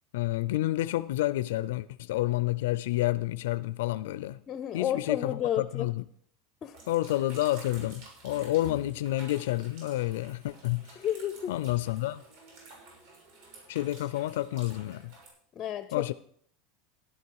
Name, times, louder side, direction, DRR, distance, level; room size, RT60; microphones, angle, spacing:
voice 1, 0.1-4.4 4.7-6.0 6.9-11.0 11.5-12.2 13.7-15.1 15.9-16.1, left 16 dB, 80° left, 0.4 m, -29 dB
voice 2, 4.5-5.9 6.6-6.8 11.0-11.5 15.6-16.0, left 10 dB, 25° left, 0.5 m, -31 dB
sound 1, 6.7-15.3, right 2 dB, 60° right, 6.2 m, -50 dB
13.0 x 11.0 x 4.7 m
supercardioid pair, 180°, 0 cm